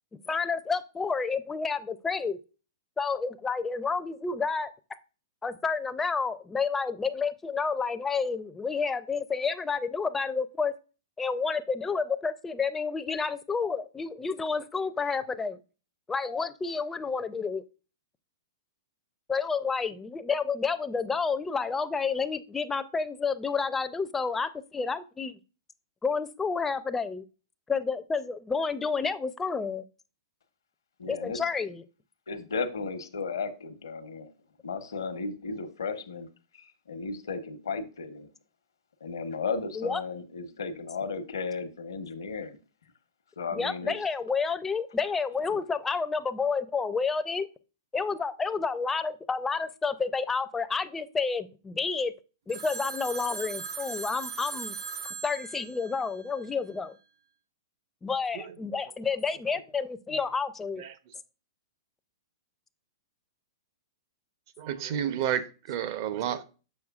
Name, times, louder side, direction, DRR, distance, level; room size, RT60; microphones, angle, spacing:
voice 1, 0.3-2.4 3.0-4.7 5.4-10.7 11.2-15.6 16.1-17.6 19.3-25.4 26.0-27.2 27.7-29.8 31.1-31.8 39.8-40.0 43.5-47.5 47.9-52.1 52.5-54.8 55.0-57.0 58.0-60.8, left 5 dB, 10° left, 0.4 m, -30 dB
voice 2, 31.0-31.4 32.3-34.3 34.6-36.3 36.5-38.3 39.0-42.6 43.4-43.9 45.5-45.6, left 4 dB, 85° left, 0.9 m, -35 dB
Telephone, 52.5-56.7, right 5 dB, 75° right, 3.8 m, -39 dB
voice 3, 64.6-66.4, right 10 dB, 50° right, 0.7 m, -31 dB
6.7 x 6.3 x 2.4 m
hypercardioid pair, 125°, 2 cm